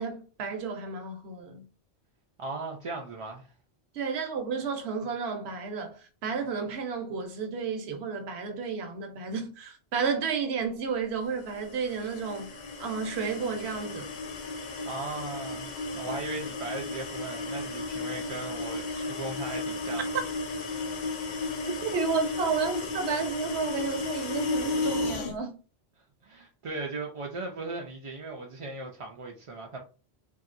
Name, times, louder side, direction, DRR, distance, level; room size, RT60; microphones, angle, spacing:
voice 1, 0.0-1.6 3.9-12.5 12.8-14.1 21.8-25.5, right 5 dB, 80° right, 0.9 m, -32 dB
voice 2, 2.4-3.5 14.9-20.1 26.2-29.8, right 3 dB, 55° right, 0.3 m, -37 dB
sound 1, 11.4-25.3, left 3 dB, 55° left, 0.6 m, -34 dB
2.8 x 2.6 x 2.5 m
omnidirectional pair, 1.1 m